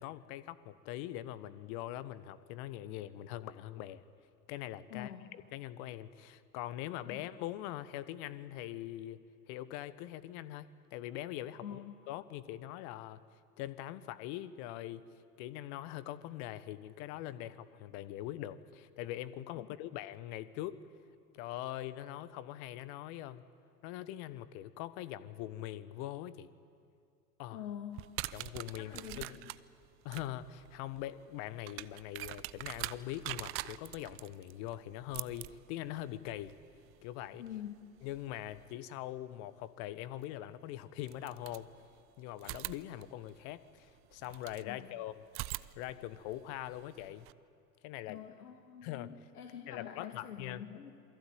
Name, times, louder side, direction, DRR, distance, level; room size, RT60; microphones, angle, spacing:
voice 1, 0.0-4.0 4.5-9.2 9.5-11.8 12.1-13.2 13.6-15.0 15.4-20.8 21.3-23.4 23.8-26.5 27.4-27.6 28.3-29.4 30.0-36.6 37.0-37.4 38.0-41.7 42.2-45.2 45.8-47.3 47.8-48.2 48.8-49.1 49.7-50.6, left 13 dB, 45° left, 15 dB, 1.4 m, -42 dB
voice 2, 4.9-5.3 7.0-7.2 11.6-11.9 19.6-19.7 27.5-28.1 28.7-29.4 37.4-37.8 44.6-44.9 48.1-50.9, left 9 dB, 65° left, 3 dB, 2.4 m, -46 dB
sound 1, 27.9-38.7 40.2-40.3 41.0-42.0 42.4-44.7 45.3-47.3, right 19 dB, 30° right, 0.6 m, -45 dB
27.5 x 23.0 x 8.8 m, 2.4 s
figure-of-eight pair, 85°, 48 cm